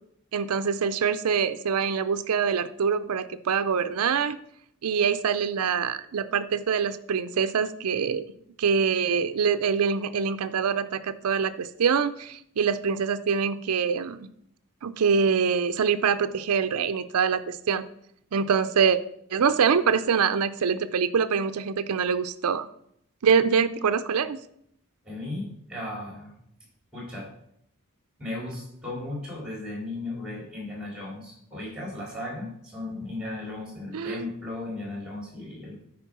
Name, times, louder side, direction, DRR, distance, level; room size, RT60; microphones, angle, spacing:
voice 1, 0.3-4.4 4.8-8.2 8.6-14.3 14.8-17.8 18.3-19.0 19.3-22.7 23.2-24.4 33.9-34.3, right 6 dB, 90° right, 12 dB, 0.5 m, -24 dB
voice 2, 25.0-26.3 26.9-27.3 28.2-35.8, left 2 dB, 5° right, -2 dB, 3.2 m, -36 dB
9.2 x 4.9 x 6.0 m, 0.71 s
head